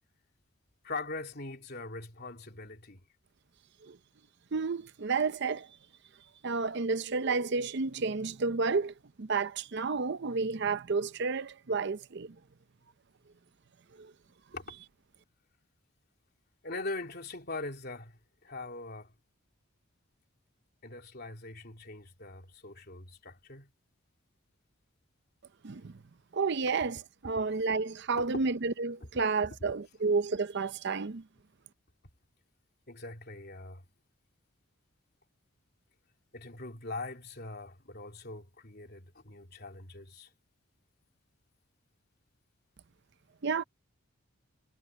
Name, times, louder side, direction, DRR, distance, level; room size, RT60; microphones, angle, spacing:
voice 1, 0.8-3.0 14.5-14.6 16.6-19.1 20.8-23.7 32.9-33.8 36.3-40.3, left 3 dB, 50° left, 3.1 m, -42 dB
voice 2, 4.5-5.7 6.4-12.3 14.0-14.1 25.6-25.9 26.3-31.2 43.4-43.6, right 4 dB, 55° right, 0.6 m, -31 dB
head